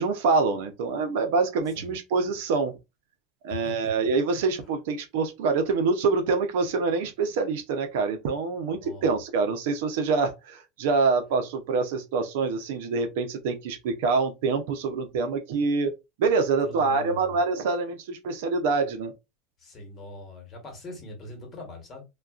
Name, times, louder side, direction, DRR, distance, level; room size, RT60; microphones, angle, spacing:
voice 1, 0.0-2.8 3.4-19.1, right 4 dB, 75° right, 0.6 m, -26 dB
voice 2, 8.7-9.1 16.6-17.4 19.6-22.0, left 2 dB, 35° left, 1.2 m, -42 dB
2.3 x 2.2 x 2.4 m
supercardioid pair, 120°, 0 cm